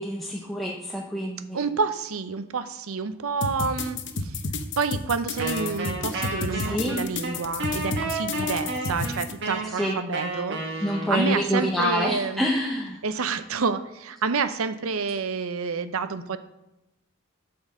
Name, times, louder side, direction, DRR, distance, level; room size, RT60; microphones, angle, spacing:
voice 1, 0.0-1.6 6.7-7.0 8.4-8.5 9.8-10.0 10.8-13.0, equal, ahead, -2 dB, 0.6 m, -27 dB
voice 2, 1.5-4.4 4.8-12.5 13.0-16.4, right 5 dB, 80° right, 12 dB, 0.6 m, -29 dB
sound 1, 3.4-9.3, left 3 dB, 55° left, 0.8 m, -31 dB
Wind instrument woodwind instrument, 5.4-11.4, right 2 dB, 55° right, 1.5 m, -31 dB
8.7 x 4.4 x 7.2 m, 0.91 s
head